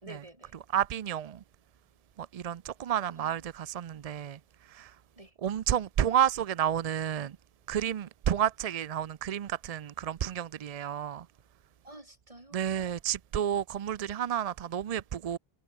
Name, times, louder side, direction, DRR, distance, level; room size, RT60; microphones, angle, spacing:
voice 1, 0.0-0.6 3.2-3.5 5.2-5.4 11.8-12.9, right 1 dB, 35° right, 3.6 m, -50 dB
voice 2, 0.7-1.4 2.2-4.4 4.7-4.9 5.4-7.4 7.7-11.3 12.5-15.4, right 10 dB, 55° right, 0.4 m, -31 dB
omnidirectional pair, 1.1 m